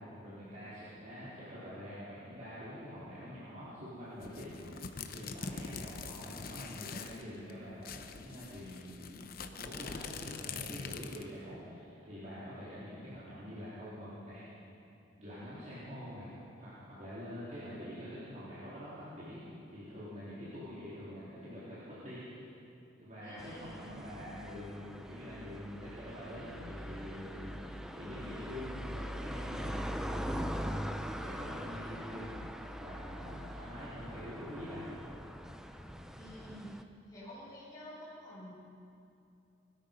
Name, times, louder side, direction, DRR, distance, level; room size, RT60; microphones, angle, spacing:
voice 1, 0.0-14.4 15.2-16.3 16.6-22.5 23.0-30.8 31.1-32.3 32.7-34.9, equal, 45° right, -11 dB, 3.7 m, -46 dB
sound 1, 4.2-7.2 7.5-7.6 7.8-11.4, left 5 dB, 55° left, 0.9 m, -44 dB
voice 2, 23.2-23.9 36.2-36.8 37.1-38.5, equal, 20° left, -8 dB, 4.7 m, -49 dB
sound 2, 23.4-36.8, equal, 5° right, 0.6 m, -42 dB
21.0 x 13.0 x 5.4 m, 2.6 s
head